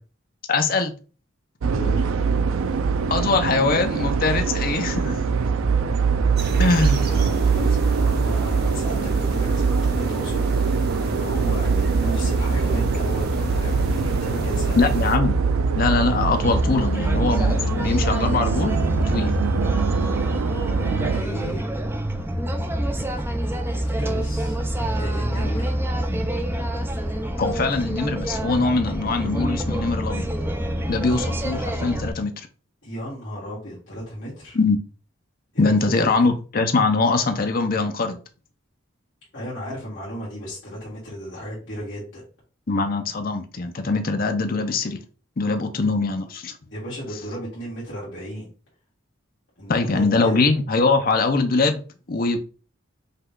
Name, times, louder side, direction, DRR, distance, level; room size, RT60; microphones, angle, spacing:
voice 1, 0.5-0.9 3.1-5.1 6.6-7.0 14.8-15.4 15.7-19.3 27.4-30.3 30.9-32.5 34.5-34.8 35.6-38.2 42.7-45.0 45.4-46.6 49.7-51.8 52.1-52.4, left 3 dB, 45° left, 0.6 m, -22 dB
sound 1, 1.6-21.2, right 5 dB, 85° right, 0.4 m, -23 dB
voice 2, 1.7-2.1 6.9-14.8 20.9-21.6 23.7-24.6 25.0-25.8 32.8-34.6 35.5-36.3 39.3-42.2 46.7-48.5 49.6-50.5, equal, 60° left, 1.9 m, -34 dB
sound 2, 6.4-15.2, right 3 dB, 50° right, 0.8 m, -33 dB
sound 3, 16.4-32.1, right 1 dB, 10° right, 0.5 m, -27 dB
5.5 x 2.3 x 3.6 m
head